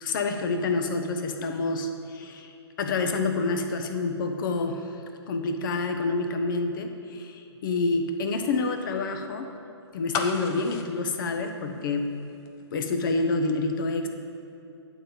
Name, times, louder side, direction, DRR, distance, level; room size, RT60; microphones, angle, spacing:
voice 1, 0.0-5.0 5.3-9.5 9.9-12.2 12.7-14.1, left 3 dB, 45° left, 5 dB, 0.8 m, -28 dB
sound 1, 10.1-12.2 12.5-12.6, left 5 dB, 20° left, 0.5 m, -33 dB
8.7 x 4.0 x 7.1 m, 2.7 s
hypercardioid pair, 145°, 15 cm